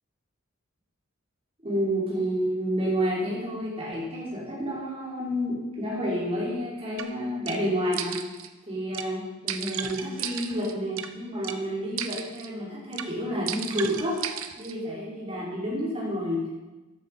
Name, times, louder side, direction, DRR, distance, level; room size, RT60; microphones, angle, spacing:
voice 1, 1.6-8.2 8.7-14.2 14.6-16.6, equal, 30° right, -6 dB, 5.8 m, -30 dB
sound 1, 7.0-7.1 7.5-7.6 7.9-8.5 8.9-9.1 9.5-11.1 11.4-11.6 12.0-12.5 12.9-13.1 13.5-14.7, right 9 dB, 70° right, 1.0 m, -34 dB
14.5 x 11.0 x 5.8 m, 1.1 s
head